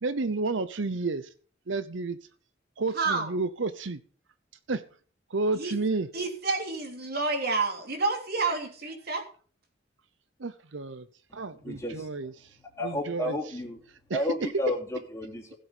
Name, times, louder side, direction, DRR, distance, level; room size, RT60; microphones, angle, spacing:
voice 1, 0.0-1.3 1.7-2.2 2.8-4.0 4.7-4.8 5.3-6.1 8.5-8.6 10.4-11.0 11.3-12.5 12.8-13.4 14.1-14.5, right 3 dB, 70° right, 13 dB, 0.8 m, -31 dB
voice 2, 2.9-3.3 5.5-5.7 6.1-9.2, right 3 dB, 55° right, 3 dB, 3.3 m, -29 dB
voice 3, 11.6-12.1 12.8-13.8 14.1-15.5, left 1 dB, 15° left, -1 dB, 3.3 m, -31 dB
16.0 x 7.7 x 5.2 m, 0.42 s
head